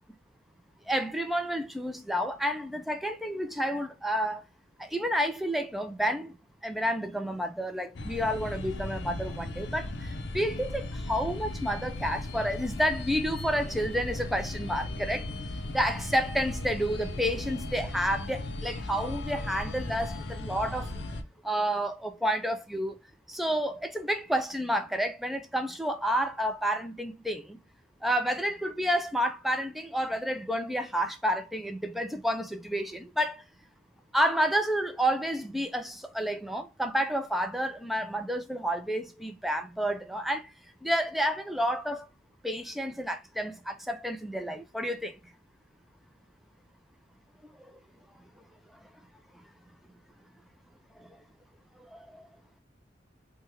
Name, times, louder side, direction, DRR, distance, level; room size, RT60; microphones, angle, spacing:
voice 1, 0.9-4.4 4.8-6.3 6.6-15.3 15.7-20.9 21.4-23.0 23.3-27.6 28.0-33.4 34.1-40.5 40.8-42.1 42.4-45.1 51.8-52.2, equal, ahead, 0.3 m, -30 dB
sound 1, 7.9-21.2, left 2 dB, 65° left, 0.5 m, -37 dB
3.3 x 2.2 x 3.0 m
head